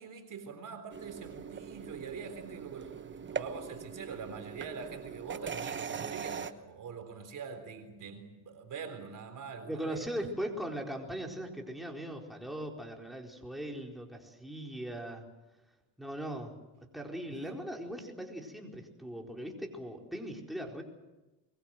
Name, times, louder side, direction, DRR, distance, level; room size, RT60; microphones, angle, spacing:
voice 1, 0.0-10.1 17.3-17.5, right 5 dB, 45° right, 8 dB, 3.8 m, -44 dB
sound 1, 0.9-6.5, right 6 dB, 25° right, 1.1 m, -41 dB
voice 2, 9.7-15.3 16.0-16.5 16.9-20.8, right 1 dB, ahead, 0 dB, 4.3 m, -39 dB
24.0 x 22.5 x 7.9 m, 1.1 s
cardioid pair, 120°, 44 cm